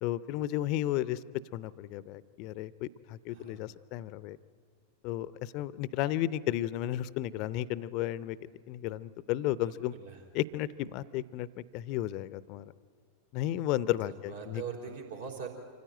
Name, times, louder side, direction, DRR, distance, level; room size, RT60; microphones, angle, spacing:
voice 1, 0.0-1.2 1.5-4.4 5.0-8.4 8.7-9.9 10.3-12.7 13.3-14.6, left 14 dB, 40° left, 18 dB, 0.6 m, -33 dB
voice 2, 3.3-3.6 9.5-10.2 14.3-15.5, right 6 dB, 70° right, -1 dB, 3.8 m, -42 dB
26.0 x 15.0 x 9.0 m, 2.1 s
figure-of-eight pair, 90°, 0 cm